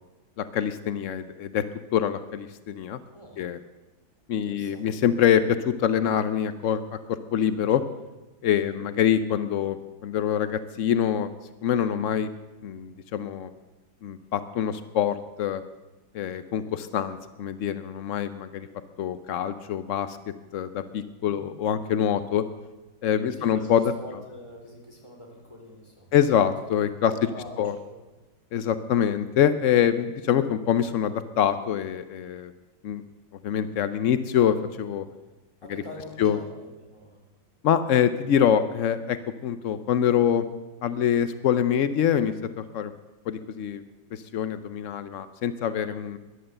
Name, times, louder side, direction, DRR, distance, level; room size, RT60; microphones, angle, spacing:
voice 1, 0.4-1.6 1.9-3.0 3.4-3.6 4.3-6.8 7.1-7.8 8.4-11.3 11.6-12.3 12.6-13.5 14.0-15.6 16.1-18.7 19.0-20.2 20.5-22.4 23.0-23.8 26.1-27.1 27.6-27.7 28.5-32.5 32.8-33.0 33.4-35.0 35.7-35.8 36.2-36.4 37.6-40.4 40.8-42.9 43.3-43.8 44.1-46.2, left 9 dB, 80° left, 12 dB, 0.6 m, -25 dB
voice 2, 3.1-3.4 4.4-4.9 8.6-8.8 21.2-21.5 23.3-26.1 27.0-28.0 35.6-37.2, left 1 dB, 15° left, -2 dB, 3.6 m, -44 dB
14.5 x 11.0 x 7.7 m, 1.1 s
omnidirectional pair, 2.1 m